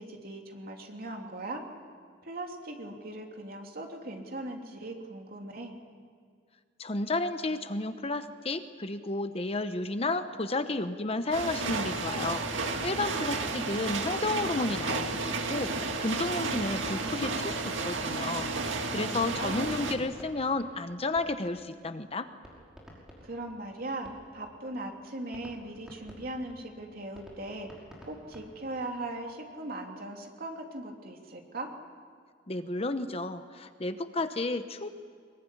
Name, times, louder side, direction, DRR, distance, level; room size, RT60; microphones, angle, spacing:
voice 1, 0.0-1.6 2.2-5.8 19.1-19.7 23.2-31.7, right 2 dB, 50° right, 2 dB, 3.2 m, -39 dB
voice 2, 6.8-15.7 16.0-22.3 32.5-34.9, left 2 dB, 30° left, 10 dB, 0.9 m, -32 dB
sound 1, 11.3-20.0, right 3 dB, 85° right, 2.1 m, -32 dB
sound 2, 16.5-18.2 19.2-21.6 22.0-22.1 22.4-24.5 24.9-25.0 25.3-28.9, equal, 5° right, 5.4 m, -50 dB
22.5 x 22.5 x 10.0 m, 2.1 s
head